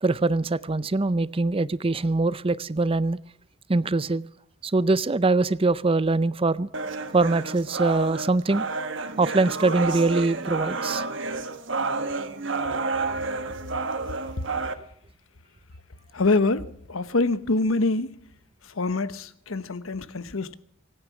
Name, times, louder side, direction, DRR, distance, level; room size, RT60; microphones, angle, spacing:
voice 1, 0.0-3.2 3.7-4.3 4.6-6.7 7.1-8.6 9.2-11.0, right 3 dB, 25° right, 0.5 m, -23 dB
sound 1, 6.7-14.7, right 3 dB, 65° right, 1.4 m, -30 dB
voice 2, 16.1-16.6 16.9-18.1 18.8-20.5, left 3 dB, 85° left, 1.0 m, -25 dB
24.5 x 9.5 x 6.0 m
head